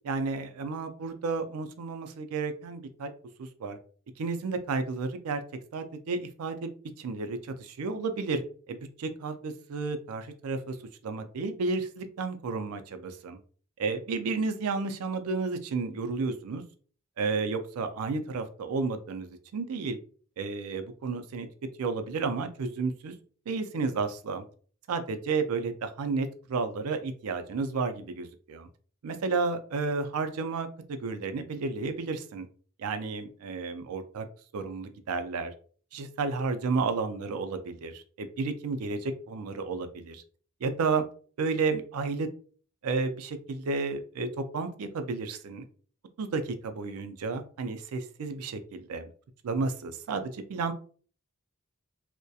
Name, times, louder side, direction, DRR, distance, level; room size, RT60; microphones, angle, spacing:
voice 1, 0.0-3.1 3.4-3.8 4.2-5.4 5.7-6.7 7.0-10.8 11.0-13.4 13.8-16.6 17.2-20.0 20.4-21.5 21.8-23.2 23.5-24.4 24.9-28.7 29.0-32.5 32.8-34.3 34.5-35.5 35.9-40.2 40.6-41.0 41.4-42.3 42.8-45.6 46.2-49.1 49.4-50.7, right 4 dB, 80° right, 9 dB, 0.4 m, -32 dB
2.3 x 2.1 x 2.6 m, 0.43 s
head